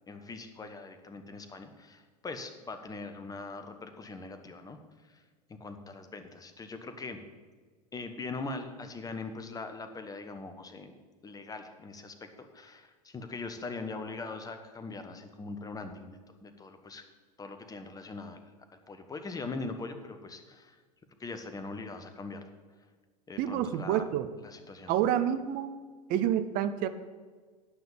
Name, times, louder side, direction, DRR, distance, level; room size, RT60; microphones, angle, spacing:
voice 1, 0.1-4.8 5.1-5.2 5.6-7.2 7.9-10.9 11.2-17.0 17.4-18.5 18.9-20.8 21.2-22.4 23.3-24.0 24.4-25.0, left 3 dB, 20° left, 8 dB, 1.1 m, -41 dB
voice 2, 23.4-24.3 24.9-25.7 26.1-26.9, right 10 dB, 45° right, 11 dB, 0.7 m, -28 dB
9.7 x 5.8 x 7.1 m, 1.5 s
hypercardioid pair, 95°, 20 cm